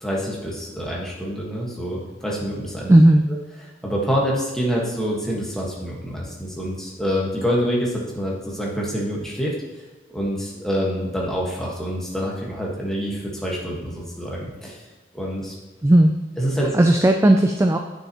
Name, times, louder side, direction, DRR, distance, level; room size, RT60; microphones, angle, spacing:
voice 1, 0.0-2.9 3.8-9.5 10.1-14.8 15.1-15.5 16.4-16.7, equal, 5° left, -4 dB, 1.5 m, -26 dB
voice 2, 2.9-3.3 15.8-16.1 16.7-17.8, right 1 dB, 15° right, 4 dB, 0.3 m, -14 dB
9.1 x 6.5 x 3.0 m, 1.2 s
head